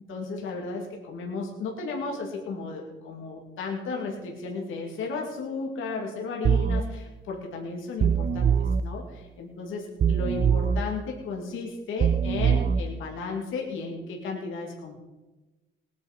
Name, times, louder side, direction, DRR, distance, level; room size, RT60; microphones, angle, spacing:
voice 1, 0.1-8.5 8.8-14.9, left 4 dB, 85° left, 0 dB, 2.5 m, -34 dB
sound 1, 6.4-6.8 8.0-8.8 10.0-10.8 12.0-12.8, right 7 dB, 50° right, 0.6 m, -22 dB
19.0 x 9.3 x 5.3 m, 1.1 s
cardioid pair, 90°, 20 cm